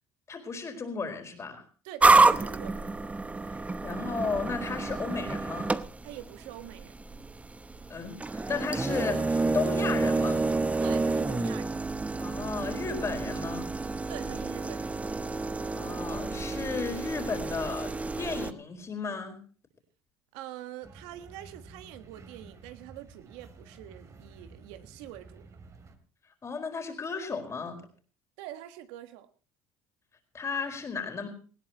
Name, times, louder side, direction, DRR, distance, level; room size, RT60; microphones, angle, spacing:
voice 1, 0.3-1.6 3.5-5.7 7.9-10.5 12.2-13.7 15.7-17.9 18.2-19.4 26.4-27.8 30.3-31.3, left 4 dB, 30° left, 4.5 m, -34 dB
voice 2, 1.8-2.9 6.0-7.0 10.8-11.8 14.1-15.1 20.3-25.5 28.4-29.3, right 13 dB, 80° right, 1.5 m, -44 dB
sound 1, 2.0-18.5, right 3 dB, 15° right, 0.8 m, -28 dB
sound 2, 20.8-26.0, right 4 dB, 35° right, 3.1 m, -51 dB
19.0 x 16.5 x 3.0 m
supercardioid pair, 100°, 9 cm